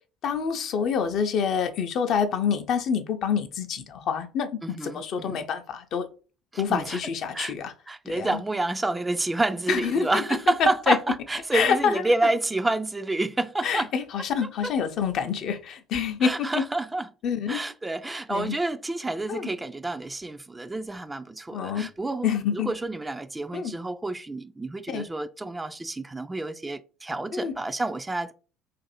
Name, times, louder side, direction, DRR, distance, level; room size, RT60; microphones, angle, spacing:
voice 1, 0.2-4.5 4.8-6.1 6.6-7.7 8.1-8.4 9.7-11.0 11.5-12.0 13.6-16.6 17.2-17.6 18.3-18.6 19.3-19.5 21.5-21.9 22.2-22.7 23.5-23.7 24.9-25.0 27.3-27.5, left 7 dB, 55° left, 0.5 m, -27 dB
voice 2, 4.6-5.5 6.5-7.0 7.3-7.5 7.9-13.9 14.6-14.7 16.2-17.1 17.5-22.3 22.5-28.3, right 2 dB, 15° right, 0.3 m, -28 dB
2.6 x 2.5 x 4.0 m
hypercardioid pair, 60°, 0 cm